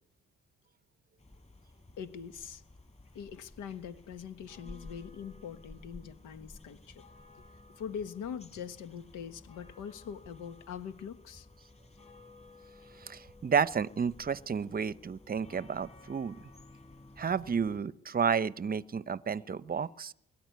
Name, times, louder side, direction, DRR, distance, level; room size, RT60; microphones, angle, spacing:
sound 1, 1.2-17.8, left 2 dB, 20° left, 7.1 m, -54 dB
voice 1, 2.0-2.6 3.1-7.0 7.8-11.5, left 7 dB, 85° left, 10 dB, 1.5 m, -42 dB
voice 2, 13.0-16.4 17.2-20.1, right 6 dB, 30° right, 16 dB, 0.8 m, -31 dB
23.0 x 13.5 x 9.5 m, 0.76 s
cardioid pair, 90°, 30 cm